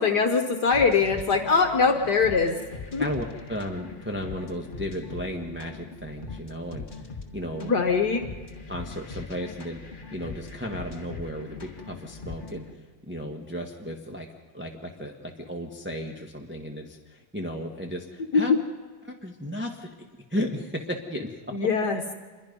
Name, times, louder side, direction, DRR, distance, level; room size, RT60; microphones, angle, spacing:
voice 1, 0.0-2.5 2.9-3.0 7.6-8.2 18.3-18.4 21.5-22.0, left 5 dB, 55° left, 5 dB, 1.8 m, -22 dB
sound 1, 0.7-12.7, left 4 dB, 25° left, 1.7 m, -41 dB
voice 2, 3.0-7.7 8.7-14.3 14.5-18.5 19.0-19.9 20.3-21.3 21.6-21.7, equal, 5° right, 1 dB, 1.4 m, -34 dB
26.5 x 22.5 x 5.4 m, 1.4 s
omnidirectional pair, 2.2 m